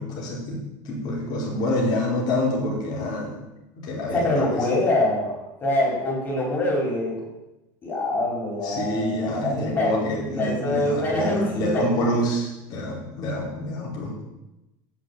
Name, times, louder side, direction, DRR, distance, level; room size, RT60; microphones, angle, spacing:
voice 1, 0.0-3.4 3.8-4.7 8.6-14.2, left 1 dB, 40° left, -3 dB, 4.7 m, -27 dB
voice 2, 4.1-7.2 7.8-9.9 10.4-12.2, left 1 dB, 20° left, -3 dB, 5.4 m, -25 dB
17.5 x 6.2 x 8.7 m, 0.96 s
cardioid pair, 170°, 11 cm